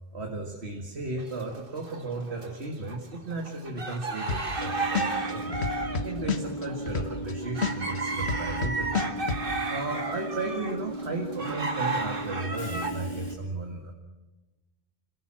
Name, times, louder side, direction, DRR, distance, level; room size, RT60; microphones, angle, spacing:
voice 1, 0.1-5.5 6.0-8.9 9.7-13.9, right 2 dB, 70° right, 2 dB, 2.3 m, -35 dB
sound 1, 1.2-2.5 2.9-12.9, right 3 dB, 55° right, 2.0 m, -33 dB
sound 2, 4.3-4.6 4.9-7.3 7.6-9.4, left 5 dB, 75° left, 1.7 m, -29 dB
Train / Subway metro underground, 4.6-13.3, right 1 dB, 30° left, 3.4 m, -37 dB
26.0 x 16.5 x 7.6 m, 1.1 s
omnidirectional pair, 1.1 m